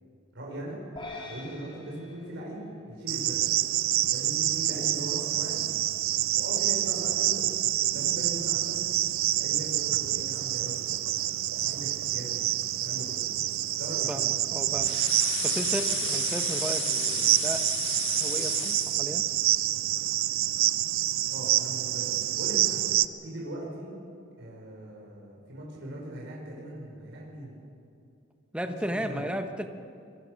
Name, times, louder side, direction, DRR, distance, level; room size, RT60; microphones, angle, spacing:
voice 1, 0.3-0.8 1.3-3.5 4.1-5.7 6.3-7.5 7.9-8.8 9.3-10.9 11.5-12.4 12.8-13.2 13.8-14.3 21.3-23.9 24.4-27.5 28.6-29.3, right 1 dB, 65° right, -3 dB, 5.4 m, -39 dB
sound 1, 1.0-3.4, left 2 dB, 25° left, 4.0 m, -45 dB
Cricket, 3.1-23.0, right 14 dB, 85° right, 0.6 m, -27 dB
voice 2, 14.1-15.0 15.4-17.7 18.1-19.2 28.5-29.7, equal, 5° right, 6 dB, 1.2 m, -34 dB
sound 2, 14.8-19.0, left 10 dB, 65° left, 1.7 m, -34 dB
25.0 x 23.5 x 6.5 m, 2.5 s
head